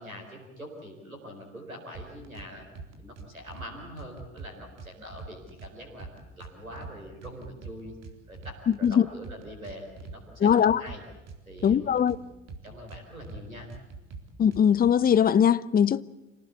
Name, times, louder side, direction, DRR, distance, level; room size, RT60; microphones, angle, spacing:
voice 1, 0.0-2.6 3.0-6.1 6.4-8.0 8.3-11.0 11.4-12.3 12.6-13.7, equal, 90° right, 4.5 m, -44 dB
sound 1, 1.9-2.5 2.8-3.7 4.0-5.7 6.0-6.9 7.2-8.9 9.2-10.2 10.5-12.2 12.5-13.4 13.7-14.9, right 4 dB, 40° right, 4.1 m, -43 dB
voice 2, 10.4-10.8 11.6-12.2 14.4-16.0, left 8 dB, 20° left, 0.7 m, -21 dB
27.0 x 18.5 x 8.3 m
figure-of-eight pair, 60°, 41 cm